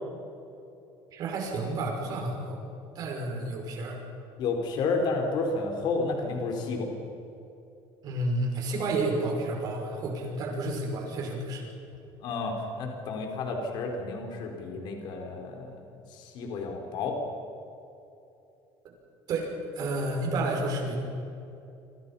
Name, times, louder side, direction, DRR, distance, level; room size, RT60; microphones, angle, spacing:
voice 1, 1.1-2.6 2.9-4.0 8.0-11.7 19.3-19.5 19.8-21.0, right 2 dB, 45° right, 1 dB, 5.9 m, -30 dB
voice 2, 4.4-6.9 12.2-17.2, left 3 dB, 50° left, 2 dB, 4.3 m, -31 dB
28.0 x 26.0 x 5.7 m, 2.8 s
cardioid pair, 175°, 10 cm